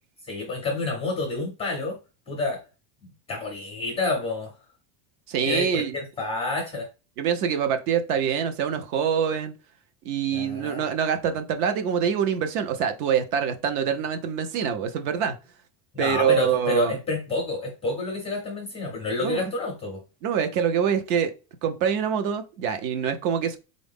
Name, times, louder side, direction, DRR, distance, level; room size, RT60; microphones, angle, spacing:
voice 1, 0.3-2.0 2.3-2.6 3.0-4.5 5.4-6.9 10.3-10.9 15.9-20.0, left 2 dB, 15° left, 0.4 m, -29 dB
voice 2, 5.3-5.9 7.2-9.5 10.0-15.3 16.0-16.9 19.2-19.4 20.2-21.3 21.6-23.6, right 7 dB, 65° right, 0.8 m, -25 dB
4.0 x 2.6 x 3.5 m
cardioid pair, 175°, 49 cm